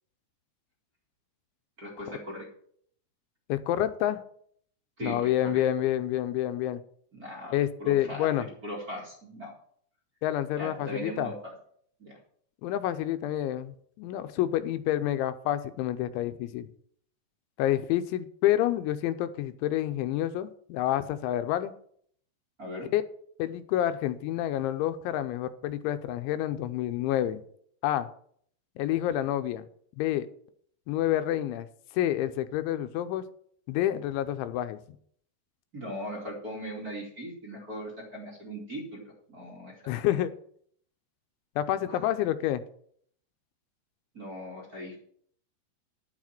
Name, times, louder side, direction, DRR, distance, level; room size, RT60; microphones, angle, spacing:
voice 1, 1.8-2.5 5.0-5.3 7.1-8.3 8.6-9.5 10.6-11.5 12.0-12.2 22.6-22.9 35.7-39.0 39.3-40.1 41.8-42.1 44.1-45.0, equal, 30° right, -2 dB, 2.0 m, -39 dB
voice 2, 3.5-4.2 5.0-6.8 7.5-8.5 10.2-11.3 12.6-16.7 17.6-21.7 22.9-23.0 23.4-27.4 27.8-28.1 28.8-29.7 30.0-30.3 30.9-31.7 31.9-33.2 33.7-34.8 39.9-40.3 41.6-42.6, left 12 dB, 90° left, 11 dB, 3.1 m, -28 dB
11.5 x 7.3 x 6.0 m, 0.62 s
omnidirectional pair, 5.2 m